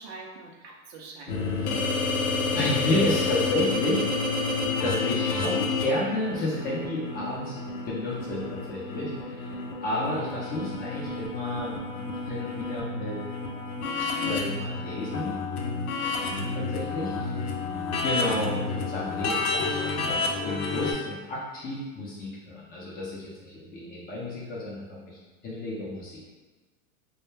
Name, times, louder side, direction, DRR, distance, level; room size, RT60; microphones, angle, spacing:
voice 1, 0.0-1.7 16.2-16.7, right 4 dB, 50° right, 0 dB, 0.5 m, -44 dB
sound 1, 1.3-20.9, left 3 dB, 85° left, 0.6 m, -30 dB
voice 2, 2.4-4.0 4.8-7.5 7.8-9.5 9.8-13.2 14.2-15.4 16.5-17.5 18.0-26.2, left 1 dB, 20° left, -5 dB, 0.6 m, -31 dB
2.2 x 2.1 x 3.2 m, 1.3 s
hypercardioid pair, 115°, 42 cm